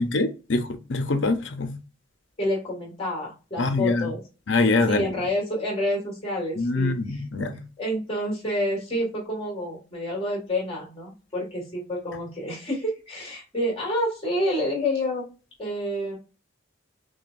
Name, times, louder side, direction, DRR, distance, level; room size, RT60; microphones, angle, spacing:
voice 1, 0.0-1.8 3.6-4.1 4.5-5.1 6.6-7.6, left 3 dB, 70° left, 0.7 m, -24 dB
voice 2, 2.4-4.2 4.9-7.2 7.8-15.3 15.6-16.2, left 1 dB, 30° left, 2.0 m, -28 dB
6.2 x 2.2 x 2.6 m
head